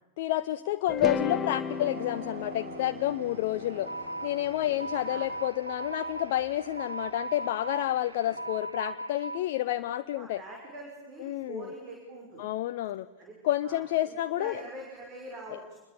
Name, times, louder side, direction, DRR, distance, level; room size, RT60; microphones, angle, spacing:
voice 1, 0.2-3.9 4.2-10.4 11.2-11.7 12.4-13.1 13.4-14.6, left 14 dB, 50° left, 10 dB, 0.7 m, -29 dB
sound 1, 0.9-5.1, left 5 dB, 20° left, 1.3 m, -35 dB
sound 2, 1.6-8.8, right 5 dB, 70° right, 1.8 m, -47 dB
sound 3, 3.9-9.4, right 2 dB, 85° right, 1.1 m, -39 dB
voice 2, 4.6-5.3 8.2-8.3 10.1-12.4 13.2-13.3 13.6-15.8, right 1 dB, 30° right, 0 dB, 6.1 m, -44 dB
26.5 x 22.0 x 7.2 m, 1.2 s
figure-of-eight pair, 90°, 0 cm